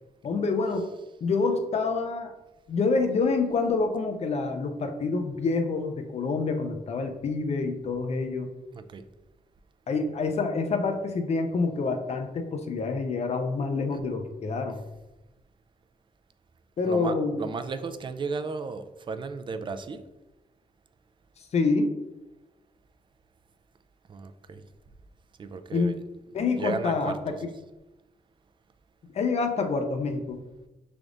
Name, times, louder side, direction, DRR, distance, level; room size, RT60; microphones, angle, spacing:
voice 1, 0.2-0.9 1.2-2.3 2.7-8.5 9.9-14.8 16.8-17.4 21.5-21.9 25.7-25.9 26.3-27.3 29.0-30.4, left 4 dB, 45° left, 5 dB, 0.5 m, -27 dB
voice 2, 16.8-20.1 24.1-24.6 25.4-26.0 26.6-27.4, right 4 dB, 35° right, 9 dB, 0.4 m, -34 dB
5.9 x 3.4 x 2.5 m, 1.0 s
wide cardioid pair, 120°, 15 cm